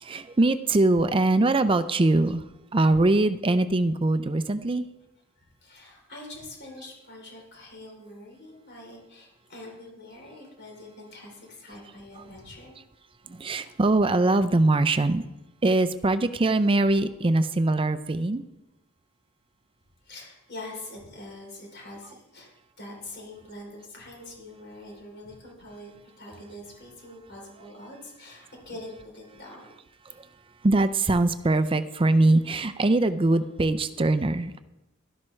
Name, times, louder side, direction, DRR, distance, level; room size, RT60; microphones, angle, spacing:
voice 1, 0.0-2.4 2.7-4.8 13.3-15.2 15.6-18.4 30.6-34.6, right 2 dB, 25° right, 12 dB, 0.5 m, -22 dB
voice 2, 5.4-12.8 20.0-22.5 22.8-29.7 31.5-31.6, left 1 dB, 55° left, -1 dB, 3.5 m, -44 dB
12.0 x 12.0 x 3.2 m, 0.98 s
head